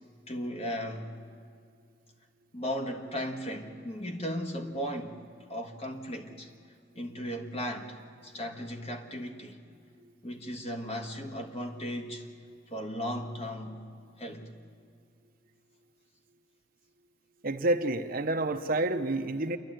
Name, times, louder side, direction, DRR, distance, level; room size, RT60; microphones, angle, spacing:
voice 1, 0.3-1.1 2.5-5.2 5.5-6.5 6.9-9.6 10.2-12.3 12.7-13.9 14.2-14.5, equal, 30° left, 3 dB, 1.6 m, -36 dB
voice 2, 17.4-19.6, right 2 dB, 45° right, 8 dB, 0.8 m, -29 dB
28.5 x 11.0 x 9.1 m, 2.3 s
head